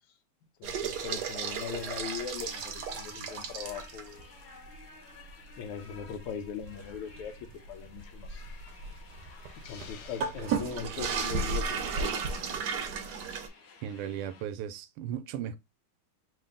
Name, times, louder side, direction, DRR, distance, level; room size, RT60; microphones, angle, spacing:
voice 1, 0.6-4.2 5.6-8.4 9.7-12.4, left 7 dB, 85° left, 1.6 m, -40 dB
sound 1, 0.6-4.2 4.6-4.8 5.2-5.3 5.8-13.5, right 5 dB, 70° right, 1.0 m, -34 dB
sound 2, 0.9-14.5, left 4 dB, 55° left, 1.5 m, -54 dB
Hiss, 9.6-11.0, left 6 dB, 70° left, 0.9 m, -51 dB
voice 2, 13.8-15.6, right 9 dB, 85° right, 1.5 m, -37 dB
3.8 x 2.5 x 3.7 m
omnidirectional pair, 2.4 m